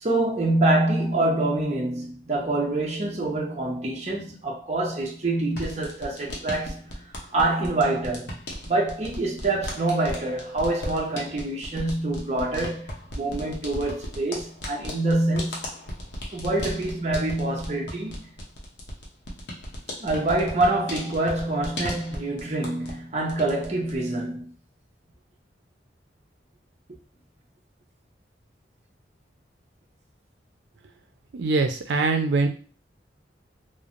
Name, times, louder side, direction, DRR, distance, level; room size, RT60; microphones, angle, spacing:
voice 1, 0.0-6.8 7.3-15.7 16.3-18.2 20.0-24.5, right 2 dB, 35° right, 0.7 m, -26 dB
sound 1, 5.5-23.0 23.3-24.0, equal, 75° left, 0.7 m, -37 dB
voice 2, 31.3-32.5, right 3 dB, 85° right, 0.5 m, -23 dB
3.1 x 2.0 x 2.5 m
head